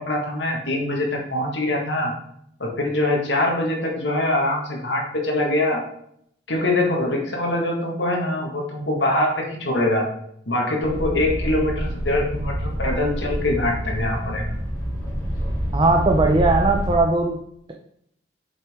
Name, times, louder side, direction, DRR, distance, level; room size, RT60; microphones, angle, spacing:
voice 1, 0.0-2.1 2.6-5.8 6.5-10.0 10.5-14.5, left 1 dB, 70° left, 0 dB, 1.8 m, -23 dB
sound 1, 10.8-17.0, equal, 20° left, 2.7 m, -27 dB
voice 2, 15.7-17.4, right 2 dB, 25° right, 1 dB, 0.6 m, -18 dB
7.1 x 5.6 x 3.7 m, 0.71 s
head